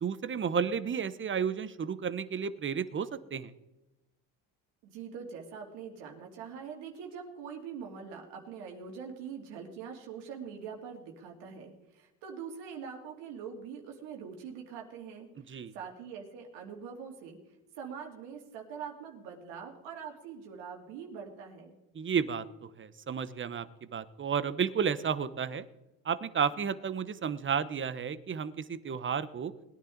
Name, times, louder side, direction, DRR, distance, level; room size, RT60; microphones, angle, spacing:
voice 1, 0.0-3.5 15.5-15.7 21.9-22.5 22.8-23.7 23.9-25.7 26.0-29.5, right 7 dB, 30° right, 14 dB, 0.9 m, -32 dB
voice 2, 4.8-15.3 15.7-17.4 17.7-21.8, right 6 dB, 85° right, 1 dB, 2.9 m, -43 dB
21.0 x 10.0 x 3.9 m, 0.99 s
supercardioid pair, 95°, 41 cm